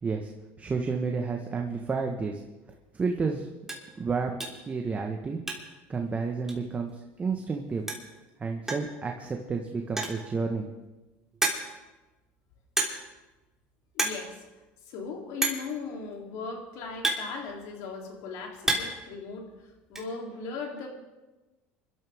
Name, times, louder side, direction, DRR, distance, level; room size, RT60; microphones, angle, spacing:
voice 1, 0.6-2.4 2.9-3.5 3.9-4.3 4.7-5.4 5.9-7.9 8.4-10.7, right 4 dB, 25° right, 2 dB, 1.5 m, -30 dB
sound 1, 2.7-2.9 3.2-3.3 3.6-3.9 4.4-4.7 5.0-5.9 6.1-6.2 6.5-6.6 7.6-7.7 7.9-8.2 8.7-9.0 9.8-10.3 10.8-10.9 11.4-11.9 12.8-13.2 13.4-13.7 13.9-14.3 14.5-14.6 15.4-15.7 16.5-17.9 18.3-19.1 19.3-20.0, right 2 dB, 10° right, 3.4 m, -30 dB
voice 2, 13.9-14.4 14.8-19.5 19.9-20.9, left 4 dB, 70° left, 1 dB, 3.4 m, -38 dB
25.0 x 13.0 x 3.7 m, 1.1 s
supercardioid pair, 90°, 6 cm